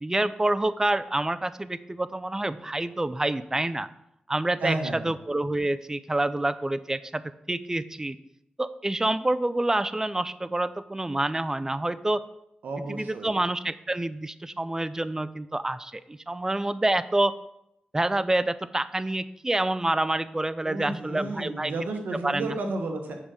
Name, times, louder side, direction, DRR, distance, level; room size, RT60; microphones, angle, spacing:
voice 1, 0.0-3.9 4.3-7.2 7.5-8.2 8.6-12.2 12.9-17.3 17.9-21.7 22.1-22.5, right 2 dB, 20° right, 15 dB, 0.5 m, -27 dB
voice 2, 4.6-5.1 12.6-13.4 20.6-23.1, right 2 dB, 80° right, 4 dB, 1.2 m, -32 dB
7.3 x 5.1 x 6.3 m, 0.81 s
cardioid pair, 60°, 3 cm